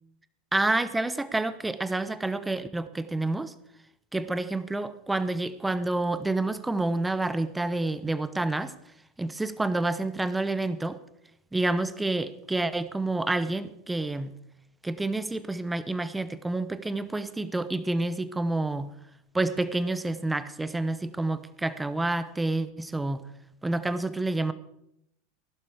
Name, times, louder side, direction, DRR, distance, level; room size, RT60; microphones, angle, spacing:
voice 1, 0.5-3.5 4.1-8.7 9.2-11.0 11.5-14.3 14.8-18.9 19.3-23.2 23.6-24.5, right 2 dB, 10° right, 14 dB, 1.0 m, -28 dB
16.0 x 11.5 x 4.9 m, 0.77 s
hypercardioid pair, 85°, 0 cm